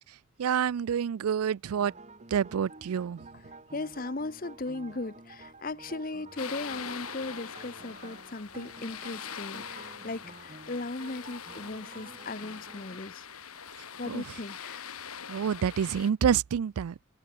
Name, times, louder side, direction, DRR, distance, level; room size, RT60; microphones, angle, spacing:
voice 1, 0.4-1.9 2.3-3.3 14.1-14.2 15.3-17.0, right 8 dB, 90° right, 0.4 m, -28 dB
sound 1, 1.7-13.0, right 2 dB, 30° right, 3.4 m, -50 dB
voice 2, 3.7-13.4 14.0-15.0, left 2 dB, 40° left, 0.9 m, -37 dB
sound 2, 5.1-5.7 6.5-6.6 7.2-7.4 8.0-8.1 8.8-9.0 9.5-9.7 10.1-10.2 10.3-10.6 10.9-14.6 14.8-15.0 15.8-15.9, left 2 dB, 20° left, 7.2 m, -69 dB
sound 3, 6.4-16.1, left 7 dB, 85° left, 3.1 m, -43 dB
head